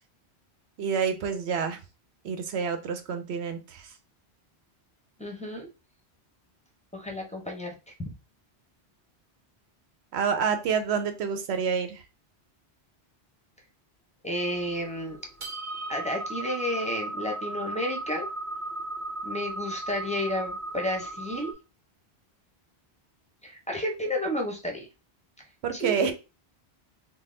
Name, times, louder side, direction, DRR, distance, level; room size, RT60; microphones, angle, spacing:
voice 1, 0.8-1.8 2.2-3.9 10.1-12.0 25.6-26.1, right 6 dB, 75° right, 8 dB, 1.0 m, -28 dB
voice 2, 5.2-5.7 6.9-8.1 14.2-15.2 15.9-18.3 19.2-21.5 23.4-24.9 25.7-26.1, left 1 dB, 5° left, 2 dB, 0.8 m, -31 dB
sound 1, 14.4-21.5, right 2 dB, 50° right, 1.3 m, -36 dB
3.9 x 2.1 x 3.8 m, 0.30 s
omnidirectional pair, 1.1 m